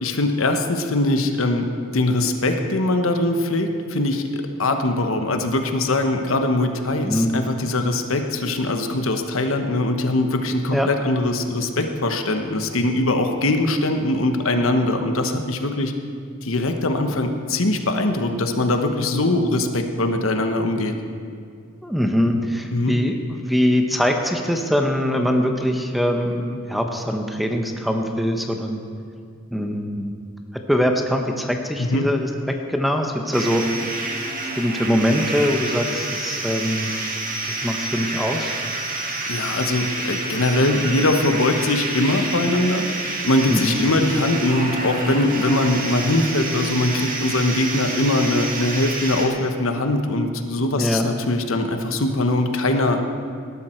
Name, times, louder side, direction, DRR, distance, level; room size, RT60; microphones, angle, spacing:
voice 1, 0.0-1.6 1.9-15.9 16.4-21.0 22.7-22.9 31.8-32.1 38.9-53.0, left 2 dB, 75° left, 6 dB, 1.1 m, -22 dB
voice 2, 21.8-28.8 29.5-30.1 30.7-32.3 32.7-33.6 34.6-36.9 37.5-38.5 43.5-43.7 50.8-51.1, equal, ahead, 4 dB, 0.9 m, -22 dB
sound 1, 33.3-49.3, right 2 dB, 40° right, 1.9 m, -28 dB
18.5 x 12.0 x 4.5 m, 2.3 s
head